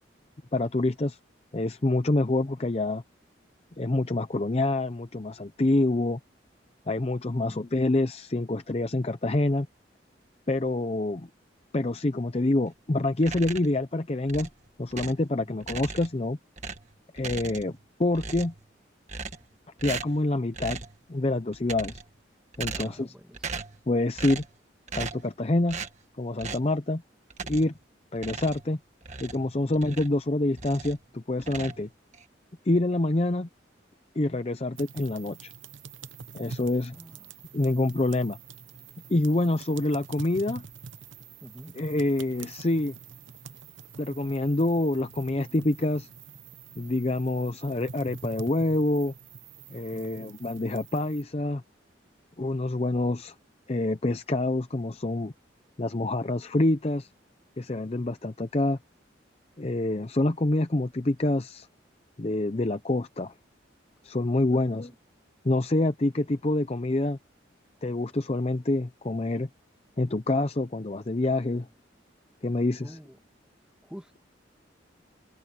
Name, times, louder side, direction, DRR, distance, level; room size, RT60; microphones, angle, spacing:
voice 1, 0.5-1.2 1.5-3.0 3.8-6.2 6.9-9.7 10.5-11.3 11.7-14.5 14.8-16.4 17.1-18.5 19.8-20.8 21.1-22.0 22.6-23.1 23.9-24.4 24.9-25.8 26.2-27.0 27.4-27.7 28.1-28.8 29.2-31.9 32.7-33.5 34.2-35.5 36.3-36.9 37.5-38.4 39.1-40.6 41.7-42.9 44.0-46.1 46.8-49.1 49.7-51.6 52.4-53.3 53.7-55.3 55.8-57.1 57.6-58.8 59.6-61.7 62.2-63.3 64.0-64.9 65.4-67.2 67.8-69.5 70.0-71.7 72.4-73.0, left 2 dB, 35° left, 0.6 m, -26 dB
sound 1, 13.2-13.8 14.3-15.3 15.6-16.2 16.6-17.8 18.1-18.7 19.1-19.5 19.8-20.2 20.5-21.0 21.5-22.2 22.5-23.1 23.3-23.8 24.2-24.6 24.9-25.3 25.7-26.0 26.4-26.7 27.3-27.8 28.2-30.2 30.5-31.0 31.4-32.2, right 4 dB, 40° right, 1.7 m, -38 dB
voice 2, 22.7-23.5 29.6-29.8 36.9-37.2 41.4-41.7 64.5-64.9 71.5-71.6 72.8-73.2 73.8-74.2, equal, 5° right, 1.6 m, -47 dB
sound 2, 34.8-51.2, right 5 dB, 90° right, 0.9 m, -46 dB
head